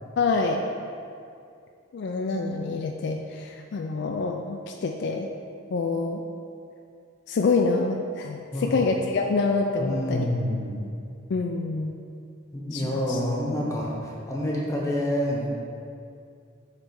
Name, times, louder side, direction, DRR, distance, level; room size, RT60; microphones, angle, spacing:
voice 1, 0.2-0.6 1.9-5.3 5.7-6.2 7.3-10.3 11.3-12.0 12.7-13.2, left 4 dB, 55° left, 2 dB, 0.3 m, -26 dB
voice 2, 8.5-8.8 9.8-10.8 12.5-15.5, left 1 dB, 15° left, -3 dB, 1.0 m, -28 dB
7.7 x 3.2 x 4.7 m, 2.4 s
head